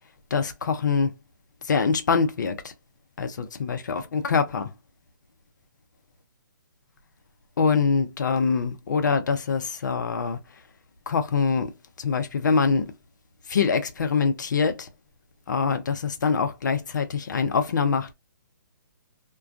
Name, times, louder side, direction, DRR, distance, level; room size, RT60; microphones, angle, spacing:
voice 1, 0.3-1.1 1.6-2.7 3.2-4.7 7.6-10.4 11.1-11.7 12.0-12.9 13.5-14.9 15.5-18.1, left 5 dB, 65° left, 0.6 m, -24 dB
2.3 x 2.2 x 2.5 m
hypercardioid pair, 135°, 10 cm